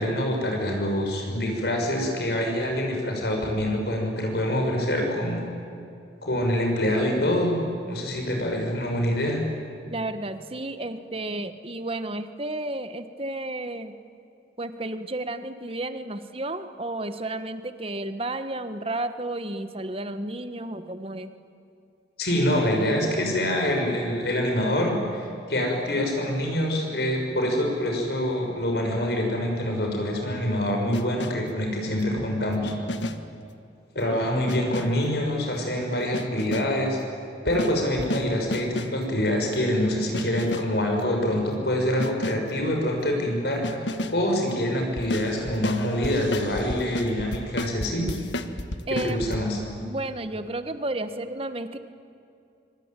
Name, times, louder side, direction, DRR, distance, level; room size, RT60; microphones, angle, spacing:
voice 1, 0.0-5.4 6.2-7.5 7.9-9.4 22.2-32.7 33.9-37.0 37.4-48.1 49.0-49.6, left 1 dB, 60° left, 2 dB, 6.7 m, -25 dB
voice 2, 9.9-13.9 14.6-21.3 48.9-49.2 49.8-51.8, right 2 dB, 30° right, 10 dB, 1.4 m, -32 dB
sound 1, 30.9-31.6 32.6-33.4 34.5-35.1 36.1-36.9 37.5-39.1 40.1-40.8 42.0-42.6 43.6-44.3 45.0-49.4, left 1 dB, 85° left, 1.6 m, -32 dB
25.5 x 25.5 x 9.1 m, 2.6 s
head